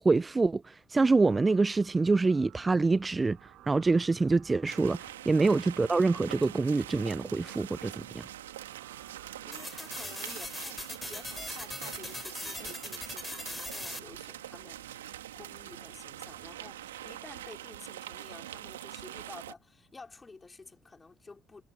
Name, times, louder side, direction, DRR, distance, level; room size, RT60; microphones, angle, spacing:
voice 1, 0.0-3.4 3.7-8.3, right 3 dB, 25° right, 0.4 m, -26 dB
sound 1, 1.1-17.6, right 15 dB, 65° right, 5.8 m, -58 dB
sound 2, 4.7-19.5, right 12 dB, 90° right, 1.8 m, -44 dB
voice 2, 9.2-21.6, left 3 dB, 25° left, 3.0 m, -51 dB
sound 3, 9.5-14.0, left 1 dB, 10° left, 3.1 m, -40 dB
hypercardioid pair, 55°, 0 cm